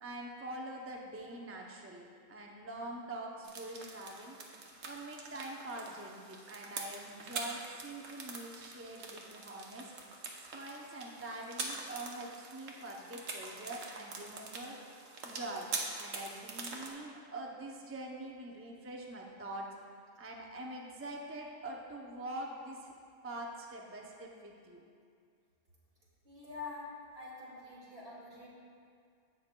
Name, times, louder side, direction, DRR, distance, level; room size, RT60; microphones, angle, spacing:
voice 1, 0.0-4.4 4.8-9.9 10.4-14.8 15.2-15.7 15.9-19.7 20.2-22.9 23.2-24.8, right 2 dB, 20° right, -1 dB, 0.3 m, -44 dB
sound 1, 3.4-16.9, right 3 dB, 80° right, 1.2 m, -44 dB
voice 2, 26.2-28.5, left 3 dB, 50° right, -7 dB, 2.5 m, -46 dB
16.5 x 5.9 x 2.2 m, 2.3 s
omnidirectional pair, 1.3 m